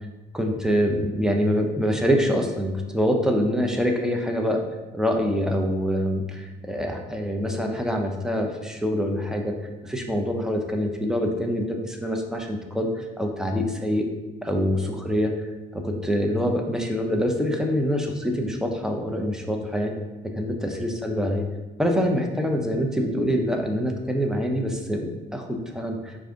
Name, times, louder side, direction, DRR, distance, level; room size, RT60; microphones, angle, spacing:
voice 1, 0.3-4.7 4.9-9.6 9.8-14.1 14.4-20.0 20.2-21.4 21.8-26.2, equal, 5° right, 2 dB, 0.5 m, -25 dB
4.7 x 2.6 x 3.7 m, 1.1 s
cardioid pair, 90°, 20 cm